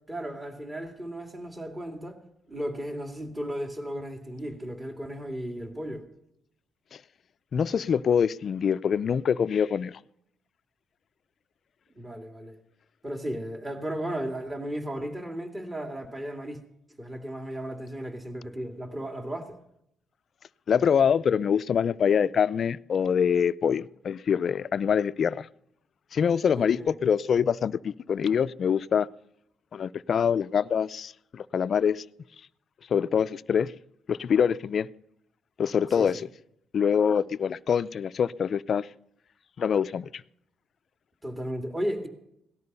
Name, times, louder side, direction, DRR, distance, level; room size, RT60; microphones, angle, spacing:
voice 1, 0.1-2.2 2.5-6.1 12.0-12.6 13.0-16.6 17.0-19.6 26.6-27.0 35.9-36.2 41.2-42.1, equal, 20° right, 2.5 m, -35 dB
voice 2, 7.5-10.0 20.7-25.5 26.1-29.1 29.7-32.0 32.9-33.7 34.1-34.9 35.6-36.2 36.7-38.9 39.6-40.2, left 7 dB, 55° left, 0.5 m, -25 dB
18.0 x 12.5 x 5.5 m
cardioid pair, 90°, 0 cm